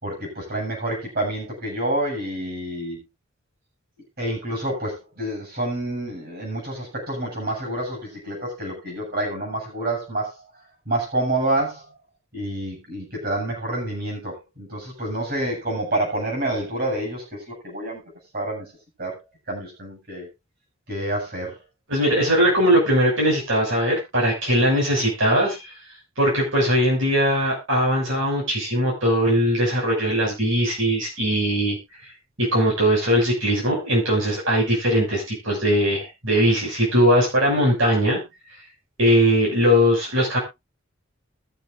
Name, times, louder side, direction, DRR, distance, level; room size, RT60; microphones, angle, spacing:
voice 1, 0.0-3.0 4.2-10.4 10.9-11.9 12.3-18.0 18.3-18.7 19.0-19.2 19.5-20.3 20.9-21.6, right 1 dB, 50° right, 0 dB, 7.3 m, -28 dB
voice 2, 21.9-25.7 26.2-31.8 32.4-38.2 39.0-40.4, equal, 70° right, -2 dB, 6.6 m, -20 dB
21.5 x 7.3 x 2.6 m, 0.23 s
head